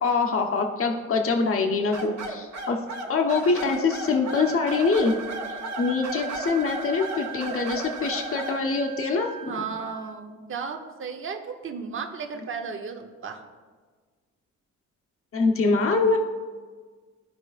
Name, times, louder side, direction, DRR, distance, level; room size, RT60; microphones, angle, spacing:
voice 1, 0.0-5.2 5.5-9.6 15.3-16.2, left 4 dB, 45° left, 3 dB, 1.1 m, -24 dB
sound 1, 1.9-8.6, right 1 dB, 60° right, 1.5 m, -35 dB
Wind instrument woodwind instrument, 4.3-10.1, right 9 dB, 75° right, 1.0 m, -40 dB
voice 2, 9.5-13.4, right 5 dB, 45° right, 4 dB, 1.0 m, -34 dB
14.0 x 4.8 x 2.5 m, 1.5 s
cardioid pair, 90°, 30 cm